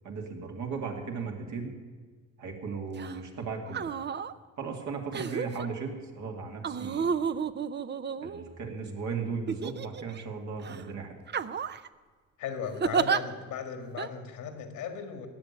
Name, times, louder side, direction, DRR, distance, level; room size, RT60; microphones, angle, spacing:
voice 1, 0.0-1.7 2.4-3.9 4.6-7.1 8.2-11.2, right 5 dB, 70° right, 2 dB, 2.5 m, -36 dB
sound 1, 3.0-3.2 3.6-4.3 5.1-5.7 6.6-8.7 9.5-10.2 10.6-10.8 11.3-11.9 12.8-13.2 14.0-14.1, right 6 dB, 35° right, 0.6 m, -31 dB
voice 2, 12.4-15.3, left 7 dB, 80° left, 7 dB, 2.0 m, -37 dB
16.0 x 7.0 x 9.9 m, 1.5 s
cardioid pair, 90°, 30 cm